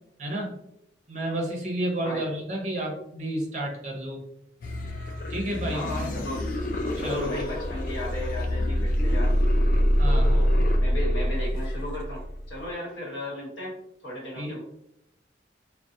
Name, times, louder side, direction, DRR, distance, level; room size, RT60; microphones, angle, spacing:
voice 1, 0.2-0.5 1.1-4.2 5.3-5.8 7.0-7.3 10.0-10.5 14.4-14.5, right 1 dB, 40° right, 0 dB, 0.6 m, -31 dB
voice 2, 2.0-2.3 5.7-6.5 6.9-9.4 10.0-13.8 14.0-14.6, left 1 dB, 80° left, -4 dB, 1.0 m, -35 dB
sound 1, 4.6-12.6, equal, 45° left, 0.3 m, -25 dB
2.4 x 2.0 x 2.6 m, 0.78 s
head